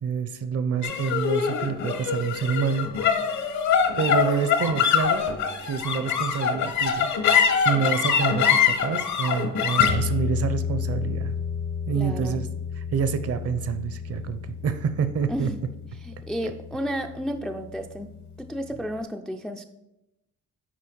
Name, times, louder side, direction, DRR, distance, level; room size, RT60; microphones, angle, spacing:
voice 1, 0.0-2.9 4.0-5.3 5.6-7.1 7.6-11.3 11.9-12.5 12.8-15.5, right 6 dB, 50° right, 11 dB, 0.7 m, -27 dB
sound 1, 0.8-17.4, left 7 dB, 60° left, 1.1 m, -25 dB
voice 2, 11.9-12.5 15.3-15.7 16.0-19.6, equal, ahead, 6 dB, 0.3 m, -32 dB
8.5 x 4.8 x 4.5 m, 0.92 s
cardioid pair, 110°, 31 cm